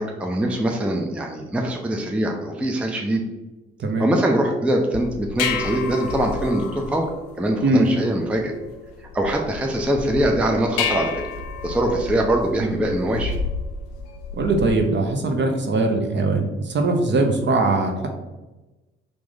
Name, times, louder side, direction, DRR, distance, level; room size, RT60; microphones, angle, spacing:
voice 1, 0.0-3.2 4.0-7.1 7.4-8.5 9.1-11.1 11.6-13.3, right 1 dB, 5° right, 2 dB, 0.4 m, -23 dB
sound 1, 4.9-14.9, left 5 dB, 75° left, 0.5 m, -31 dB
voice 2, 14.3-18.1, right 2 dB, 40° right, 4 dB, 0.7 m, -21 dB
3.0 x 2.5 x 3.7 m, 1.1 s
hypercardioid pair, 45°, 30 cm